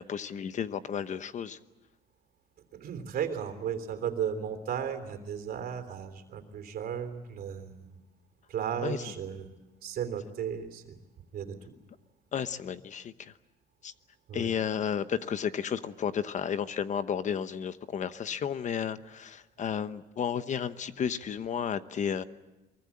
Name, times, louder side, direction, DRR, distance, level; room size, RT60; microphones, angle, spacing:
voice 1, 0.0-1.6 8.8-9.0 12.3-13.3 13.8-13.9 14.3-22.2, left 8 dB, 45° left, 12 dB, 1.0 m, -32 dB
voice 2, 2.7-7.9 8.5-9.5 9.8-11.0 11.3-11.6 14.3-14.5, right 8 dB, 60° right, 8 dB, 3.4 m, -35 dB
23.5 x 23.0 x 8.5 m, 1.0 s
cardioid pair, 110°, 17 cm